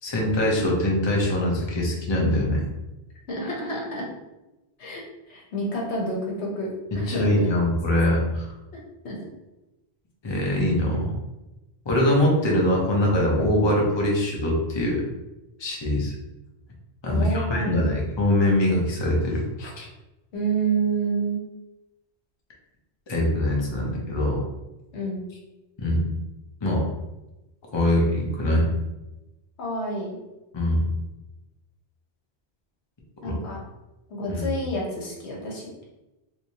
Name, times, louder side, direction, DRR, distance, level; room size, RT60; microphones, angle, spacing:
voice 1, 0.0-2.6 6.9-8.5 10.2-11.1 11.8-15.0 15.6-16.1 17.0-19.9 23.1-24.4 25.8-26.1 26.6-26.9 27.7-28.7 30.5-30.8 33.2-33.4 34.3-34.5, left 1 dB, 30° left, -2 dB, 0.7 m, -23 dB
voice 2, 3.3-4.1 4.8-5.0 5.3-6.7 6.9-7.7 9.0-9.2 17.1-17.9 20.3-21.4 24.9-25.2 29.6-30.2 33.2-33.6 34.1-35.7, right 2 dB, 80° left, -2 dB, 1.1 m, -29 dB
3.1 x 3.1 x 2.8 m, 1.0 s
omnidirectional pair, 1.1 m